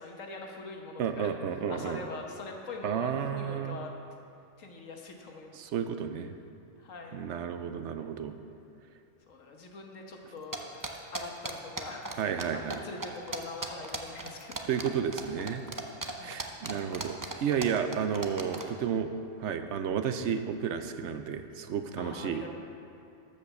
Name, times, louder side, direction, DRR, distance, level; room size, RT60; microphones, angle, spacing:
voice 1, 0.0-3.9 4.6-5.6 6.8-7.2 7.9-8.4 9.3-14.6 16.2-16.4 22.0-22.5, left 3 dB, 85° left, 1 dB, 1.6 m, -43 dB
voice 2, 1.0-2.0 2.8-3.8 5.6-6.4 7.1-8.4 12.2-12.8 14.7-15.6 16.2-17.2 17.4-19.1 19.4-22.5, right 7 dB, 70° right, 8 dB, 0.9 m, -32 dB
sound 1, 10.5-12.4 12.7-12.8 13.0-18.7, right 2 dB, 20° right, 0.5 m, -36 dB
12.5 x 5.3 x 7.0 m, 2.6 s
omnidirectional pair, 1.3 m